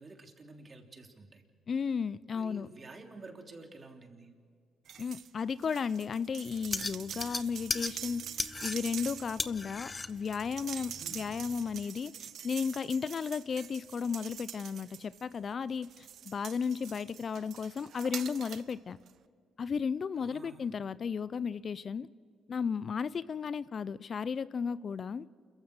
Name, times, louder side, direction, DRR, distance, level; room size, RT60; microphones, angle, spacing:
voice 1, 0.0-1.4 2.3-4.3 10.9-11.3 20.3-20.6, right 3 dB, 40° right, 3 dB, 3.3 m, -50 dB
voice 2, 1.7-2.7 5.0-19.0 19.6-22.1 22.5-25.3, left 6 dB, 50° left, 17 dB, 0.6 m, -34 dB
sound 1, 4.8-5.3 5.6-15.4 15.8-18.7 19.1-19.2, right 9 dB, 65° right, 0.8 m, -45 dB
sound 2, 6.5-11.8, left 3 dB, 30° left, 1.0 m, -38 dB
28.5 x 15.0 x 6.6 m, 2.1 s
hypercardioid pair, 50°, 0 cm